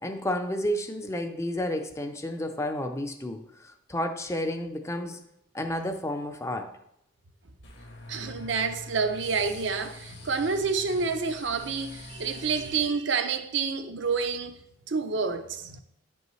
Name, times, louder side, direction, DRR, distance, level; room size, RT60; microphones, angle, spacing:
voice 1, 0.0-5.2 5.5-6.8, left 1 dB, 15° left, 0.5 m, -31 dB
sound 1, 7.6-12.8, left 2 dB, 60° left, 1.3 m, -44 dB
voice 2, 8.1-14.6 14.9-15.8, right 5 dB, 65° right, 0.6 m, -28 dB
9.9 x 5.4 x 3.1 m
head